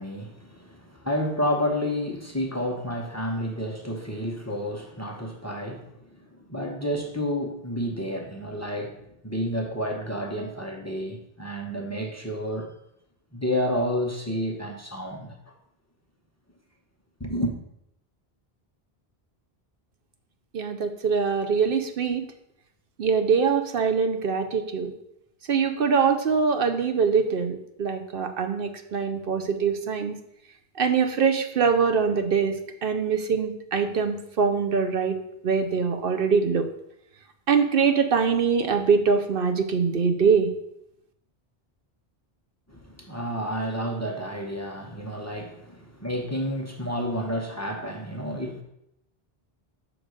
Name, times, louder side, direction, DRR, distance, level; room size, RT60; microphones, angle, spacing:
voice 1, 0.0-12.7 13.3-15.5 17.2-17.5 42.7-48.6, equal, 15° left, 2 dB, 0.8 m, -30 dB
voice 2, 20.5-22.2 23.0-24.9 25.5-30.2 30.8-32.5 32.8-35.2 35.4-36.7 37.5-40.5, right 5 dB, 65° right, 7 dB, 0.8 m, -23 dB
6.3 x 3.9 x 6.3 m, 0.80 s
omnidirectional pair, 1.0 m